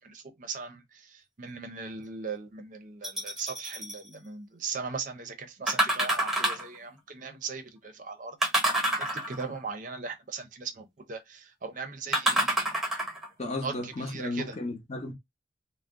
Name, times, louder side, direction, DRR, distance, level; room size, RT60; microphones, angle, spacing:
voice 1, 0.0-12.7 13.6-14.6, right 5 dB, 45° right, 0.6 m, -39 dB
sound 1, 3.0-4.0 5.7-6.8 8.4-9.6 12.1-13.3 13.9-14.0, right 1 dB, ahead, 0.9 m, -27 dB
voice 2, 13.4-15.1, left 2 dB, 35° left, 0.8 m, -34 dB
2.4 x 2.0 x 3.5 m
head